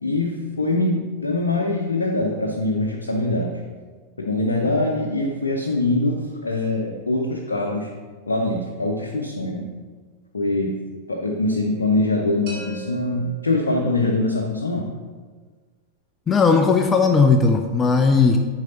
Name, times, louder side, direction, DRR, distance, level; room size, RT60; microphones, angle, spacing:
voice 1, 0.0-3.5 4.2-7.9 8.3-9.7 10.3-10.8 11.1-14.9, left 2 dB, 75° left, 0 dB, 0.7 m, -23 dB
sound 1, 12.5-14.3, right 3 dB, 45° right, 2.0 m, -40 dB
voice 2, 16.3-18.4, left 4 dB, 20° left, 5 dB, 0.4 m, -17 dB
9.1 x 4.8 x 2.9 m, 1.4 s
figure-of-eight pair, 90°, 0 cm